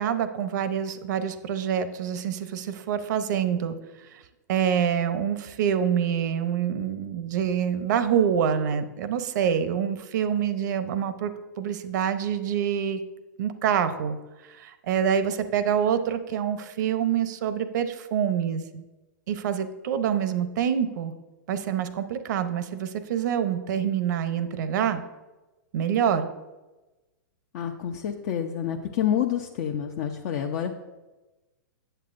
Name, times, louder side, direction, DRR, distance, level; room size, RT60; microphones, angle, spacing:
voice 1, 0.0-3.8 4.1-4.2 4.5-13.0 13.4-14.2 14.5-18.8 19.3-21.1 21.5-25.0 25.7-26.3, right 8 dB, 60° right, 11 dB, 0.7 m, -26 dB
voice 2, 27.5-30.7, left 9 dB, 55° left, 3 dB, 0.6 m, -28 dB
9.0 x 7.6 x 2.5 m, 1.1 s
hypercardioid pair, 120°, 11 cm